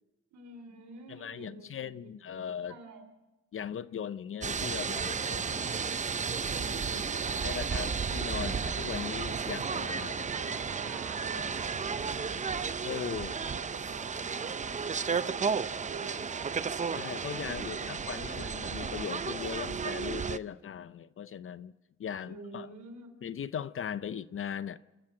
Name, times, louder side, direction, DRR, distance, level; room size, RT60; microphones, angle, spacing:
voice 1, 0.3-3.1 6.5-8.0 8.3-8.7 10.3-12.7 13.1-16.6 17.2-18.6 22.2-23.1, right 5 dB, 75° right, 3.4 m, -48 dB
voice 2, 1.1-2.8 3.5-5.8 7.4-10.3 12.8-13.3 17.0-21.7 22.0-22.7 23.2-24.8, left 8 dB, 45° left, 0.6 m, -39 dB
sound 1, 4.4-20.4, right 5 dB, 25° right, 0.6 m, -33 dB
27.0 x 13.5 x 7.7 m
cardioid pair, 90°, 30 cm